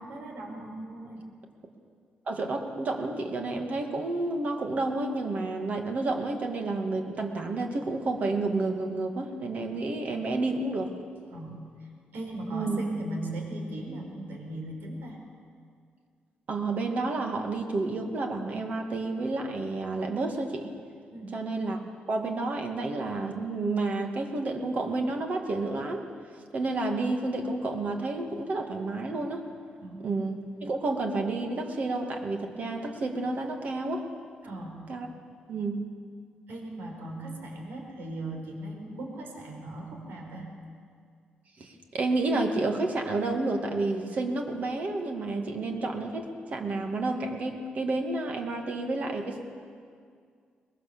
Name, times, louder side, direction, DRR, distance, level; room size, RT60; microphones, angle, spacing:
voice 1, 0.1-1.2 11.3-11.6 12.1-15.2 21.1-21.3 29.8-30.1 34.4-34.8 36.5-40.5, right 1 dB, 80° right, 1 dB, 4.7 m, -38 dB
voice 2, 2.3-10.9 12.5-12.8 16.5-20.7 21.3-21.8 22.1-26.1 26.5-29.4 30.0-34.1 34.9-35.1 35.5-35.9 41.6-49.5, right 2 dB, 50° right, 3 dB, 2.3 m, -30 dB
22.5 x 21.5 x 7.0 m, 2.2 s
wide cardioid pair, 140°, 3 cm